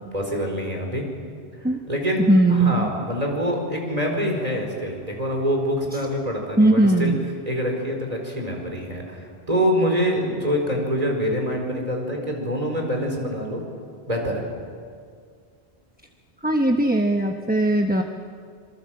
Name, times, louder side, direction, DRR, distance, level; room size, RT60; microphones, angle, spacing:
voice 1, 0.1-1.1 1.6-7.1 7.4-13.6 14.1-14.4, equal, 35° right, 1 dB, 4.7 m, -25 dB
voice 2, 2.2-2.9 6.6-7.2 16.4-18.0, right 2 dB, 10° right, 4 dB, 1.0 m, -19 dB
26.5 x 23.5 x 7.7 m, 2.1 s
omnidirectional pair, 1.1 m